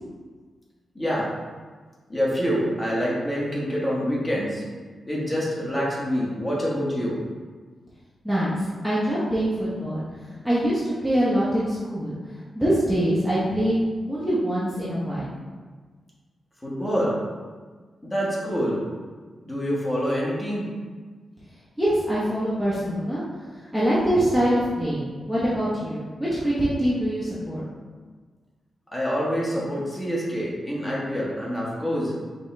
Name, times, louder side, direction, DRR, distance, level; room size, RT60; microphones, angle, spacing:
voice 1, 0.9-1.3 2.1-4.6 5.0-7.2 16.6-17.1 18.0-18.8 19.4-20.7 28.9-32.1, equal, 15° left, -5 dB, 1.3 m, -26 dB
voice 2, 8.2-10.1 10.4-12.2 12.6-13.8 14.1-15.3 21.8-23.2 23.5-27.6, equal, ahead, -10 dB, 1.0 m, -24 dB
5.3 x 3.1 x 3.3 m, 1.4 s
wide cardioid pair, 110°, 0 cm